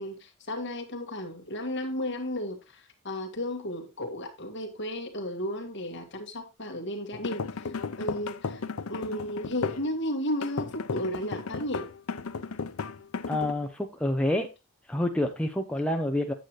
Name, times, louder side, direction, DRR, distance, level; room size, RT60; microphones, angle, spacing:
voice 1, 0.0-7.7 8.0-8.6 8.9-11.9, left 1 dB, 55° left, 1.9 m, -34 dB
sound 1, 7.1-9.9 10.4-13.5, left 5 dB, 85° left, 0.6 m, -34 dB
voice 2, 13.3-14.5 14.9-16.3, left 1 dB, 5° left, 0.7 m, -28 dB
9.1 x 7.6 x 3.1 m
head